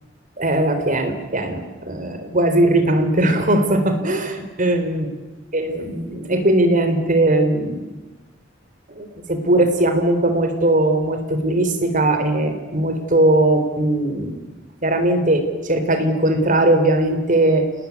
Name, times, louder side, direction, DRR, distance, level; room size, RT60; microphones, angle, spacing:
voice 1, 0.4-5.2 5.5-7.8 8.9-14.4 14.8-17.7, right 1 dB, 45° right, 7 dB, 3.7 m, -19 dB
27.5 x 19.5 x 9.6 m, 1.2 s
head